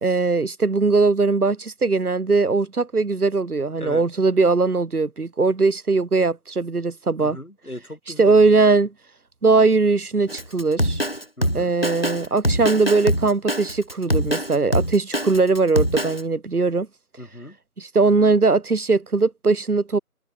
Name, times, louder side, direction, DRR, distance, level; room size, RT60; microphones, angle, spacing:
voice 1, 0.0-7.4 8.2-8.9 9.4-11.0 11.5-16.9 17.8-20.0, right 3 dB, 85° right, 1.1 m, -20 dB
voice 2, 7.2-8.5 11.4-11.7 17.2-17.6, left 1 dB, 75° left, 7.3 m, -37 dB
Drum kit, 10.3-16.2, equal, 40° left, 1.4 m, -24 dB
figure-of-eight pair, 180°, 44 cm